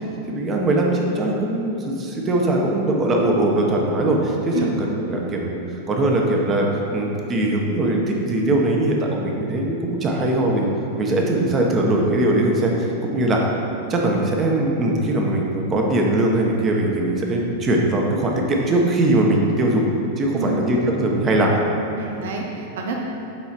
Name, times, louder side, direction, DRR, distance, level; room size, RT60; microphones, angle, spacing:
voice 1, 0.3-5.6 5.9-10.7 11.0-13.4 13.9-19.8 20.2-21.5, right 1 dB, 25° right, 0 dB, 1.2 m, -21 dB
voice 2, 22.0-23.0, right 4 dB, 70° right, 1 dB, 0.9 m, -28 dB
7.8 x 4.8 x 4.4 m, 2.9 s
hypercardioid pair, 120°, 0 cm